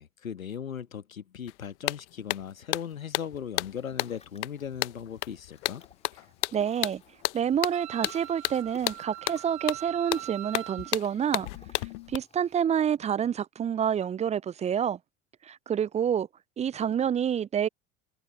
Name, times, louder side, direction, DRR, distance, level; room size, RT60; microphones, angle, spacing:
voice 1, 0.0-5.8, left 8 dB, 80° left, 1.7 m, -38 dB
sound 1, 1.5-1.6 1.9-12.2, left 20 dB, 60° left, 0.9 m, -33 dB
Ocean, 3.6-12.6, left 4 dB, 15° left, 4.2 m, -55 dB
voice 2, 6.5-7.0 7.3-11.5 12.1-15.0 15.4-16.3 16.6-17.7, right 8 dB, 15° right, 0.5 m, -28 dB
Wind instrument woodwind instrument, 7.7-10.9, right 19 dB, 45° right, 3.5 m, -42 dB
figure-of-eight pair, 70°, 40 cm